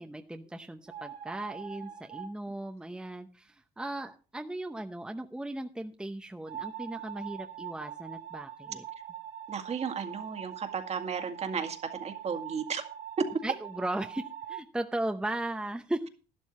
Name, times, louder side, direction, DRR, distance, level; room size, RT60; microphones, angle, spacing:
voice 1, 0.0-8.8 13.4-14.2 14.5-16.1, right 1 dB, 5° right, 5 dB, 0.8 m, -37 dB
sound 1, 0.9-2.3 6.5-14.6, right 9 dB, 70° right, 2.6 m, -43 dB
voice 2, 9.5-12.8 13.2-13.3, right 5 dB, 40° right, 7 dB, 1.9 m, -34 dB
12.0 x 11.5 x 4.3 m, 0.36 s
cardioid pair, 110°, 17 cm